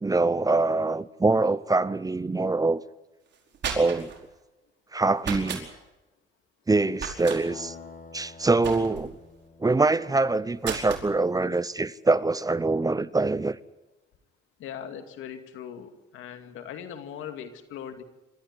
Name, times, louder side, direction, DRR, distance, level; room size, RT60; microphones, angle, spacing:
voice 1, 0.0-2.8 3.7-4.1 4.9-5.7 6.7-7.7 8.1-9.1 9.6-13.6, right 3 dB, 20° right, 0.8 m, -24 dB
sound 1, 3.3-4.2 5.2-5.7 7.0-7.4 8.6-9.2 10.6-11.1, right 6 dB, 65° right, 4.8 m, -34 dB
sound 2, 7.5-11.3, left 4 dB, 40° left, 4.1 m, -48 dB
voice 2, 14.6-18.0, left 8 dB, 85° left, 2.5 m, -40 dB
26.5 x 14.0 x 9.8 m
cardioid pair, 90°, 20 cm